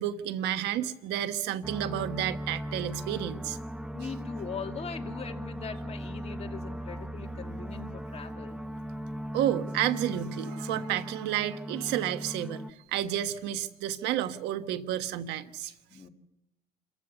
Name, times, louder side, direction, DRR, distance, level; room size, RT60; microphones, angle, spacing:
voice 1, 0.0-3.6 9.3-12.6 12.9-15.7, right 11 dB, 90° right, 10 dB, 1.4 m, -31 dB
sound 1, 1.6-12.7, equal, 5° right, 0.8 m, -38 dB
voice 2, 3.9-8.6 15.9-16.1, left 6 dB, 40° left, 4 dB, 2.6 m, -40 dB
28.0 x 15.0 x 7.0 m, 0.88 s
cardioid pair, 110°, 17 cm